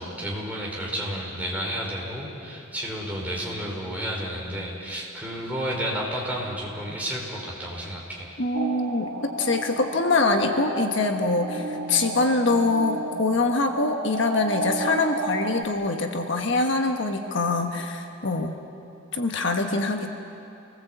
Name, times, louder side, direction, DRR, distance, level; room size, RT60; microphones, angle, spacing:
voice 1, 0.0-8.4, equal, 10° right, -3 dB, 4.9 m, -31 dB
voice 2, 8.4-18.6 19.1-20.2, left 3 dB, 60° left, 4 dB, 1.4 m, -24 dB
sound 1, 8.5-15.6, right 3 dB, 90° right, 1.4 m, -32 dB
28.5 x 20.0 x 8.0 m, 2.8 s
head